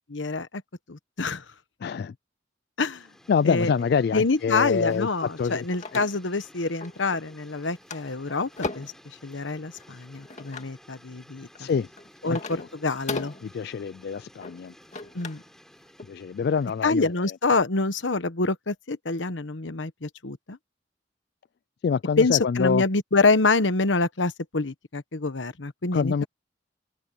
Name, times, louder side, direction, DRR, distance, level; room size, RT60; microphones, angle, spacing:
voice 1, 0.1-0.6 0.9-1.4 2.8-3.1 3.4-3.7 4.1-8.5 8.7-8.9 9.2-11.7 12.2-12.4 12.8-13.3 15.1-15.4 16.8-20.6 22.2-26.3, left 3 dB, 80° left, 1.2 m, -26 dB
voice 2, 1.8-2.1 3.3-5.6 5.9-6.0 11.6-11.9 12.2-12.7 13.4-14.7 16.1-17.4 21.8-22.8 25.9-26.2, left 6 dB, 55° left, 0.3 m, -26 dB
Train upon us, 2.9-17.4, equal, 5° left, 4.5 m, -55 dB
sound 1, 4.9-6.5 6.8-7.3 7.6-9.0 9.7-10.7 11.4-15.5 15.8-16.0, left 3 dB, 40° left, 2.1 m, -38 dB
open air
head